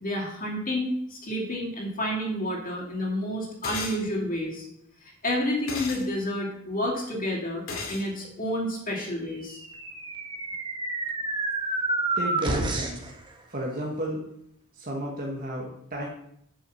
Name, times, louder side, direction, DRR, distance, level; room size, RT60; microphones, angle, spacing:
voice 1, 0.0-4.7 5.2-7.6 7.9-9.6, left 1 dB, 40° left, -2 dB, 2.5 m, -29 dB
sound 1, 3.6-4.0 5.7-6.0 7.7-8.0, left 3 dB, 70° left, 2.5 m, -33 dB
sound 2, 9.5-13.1, right 2 dB, 25° right, 1.2 m, -29 dB
voice 2, 12.2-13.1 13.5-14.2 14.8-16.1, right 1 dB, 45° right, -2 dB, 1.4 m, -32 dB
8.5 x 5.6 x 7.0 m, 0.72 s
head